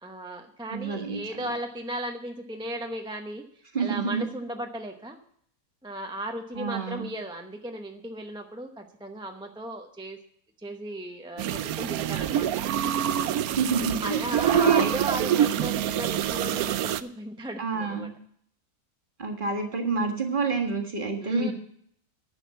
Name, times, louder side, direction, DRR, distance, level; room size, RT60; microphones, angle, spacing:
voice 1, 0.0-3.4 3.8-5.2 5.8-10.2 10.6-12.5 14.0-18.1 21.2-21.5, right 1 dB, 5° right, 4 dB, 0.7 m, -36 dB
voice 2, 0.7-1.2 3.7-4.2 6.6-7.1 13.5-14.9 17.6-18.1 19.2-21.5, right 4 dB, 35° right, 2 dB, 1.8 m, -28 dB
sound 1, 11.4-17.0, right 10 dB, 85° right, 1.1 m, -26 dB
10.5 x 6.5 x 8.4 m, 0.65 s
omnidirectional pair, 1.5 m